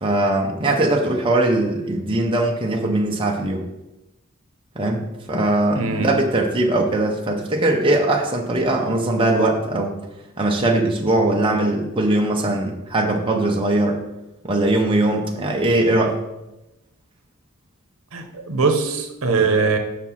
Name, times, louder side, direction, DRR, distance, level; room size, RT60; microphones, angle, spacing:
voice 1, 0.0-3.7 4.8-10.0 10.4-14.0 14.4-16.2, right 2 dB, 25° right, 0 dB, 0.8 m, -20 dB
voice 2, 5.7-6.1 18.1-19.8, right 4 dB, 75° right, 4 dB, 0.9 m, -21 dB
6.0 x 4.5 x 5.6 m, 0.95 s
head